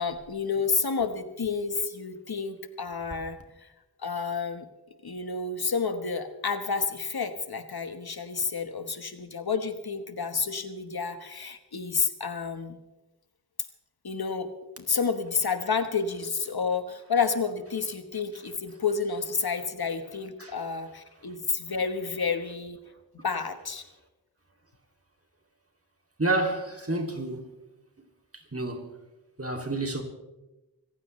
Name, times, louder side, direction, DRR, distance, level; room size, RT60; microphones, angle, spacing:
voice 1, 0.0-3.4 4.0-4.6 5.0-12.8 14.0-14.5 14.8-22.8 23.2-23.8, left 5 dB, 75° left, 1.3 m, -30 dB
voice 2, 26.2-27.5 28.5-28.9 29.4-30.0, right 2 dB, 35° right, 2.6 m, -29 dB
25.0 x 15.0 x 3.2 m
wide cardioid pair, 65°, 38 cm